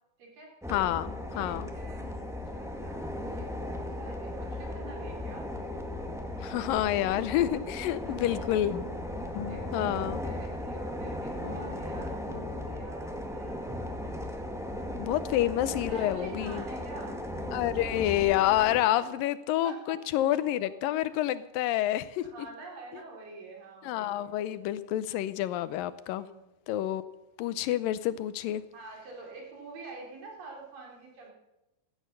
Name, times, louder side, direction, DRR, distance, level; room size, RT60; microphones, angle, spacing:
voice 1, 0.2-0.5 1.3-5.5 8.1-8.7 9.5-15.1 15.9-17.2 18.9-19.0 19.6-20.0 20.3-20.5 20.9-21.2 22.3-24.3 25.6-25.7 26.2-26.4 28.7-31.3, right 3 dB, 80° right, -1 dB, 5.7 m, -47 dB
sound 1, 0.6-18.8, left 1 dB, ahead, 0.6 m, -37 dB
voice 2, 0.7-1.7 6.4-8.7 9.7-10.2 15.0-16.6 17.5-22.5 23.8-26.3 26.7-27.0 27.4-28.6, left 13 dB, 85° left, 15 dB, 2.5 m, -28 dB
sound 2, 8.7-11.1 11.4-13.7, left 7 dB, 55° left, 1.7 m, -44 dB
16.5 x 12.5 x 6.7 m, 0.96 s
omnidirectional pair, 3.9 m